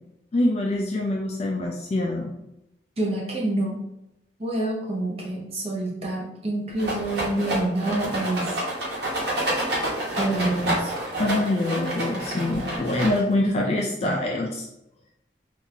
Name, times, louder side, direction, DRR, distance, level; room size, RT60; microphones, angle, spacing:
voice 1, 0.3-2.3 11.2-14.7, left 1 dB, 35° left, 0 dB, 0.3 m, -25 dB
voice 2, 3.0-3.8 4.4-8.6 10.1-10.9 13.4-14.2, right 2 dB, 35° right, -2 dB, 0.6 m, -27 dB
Rattle, 6.8-13.5, right 1 dB, 70° right, 1.0 m, -28 dB
3.6 x 2.4 x 2.7 m, 0.85 s
head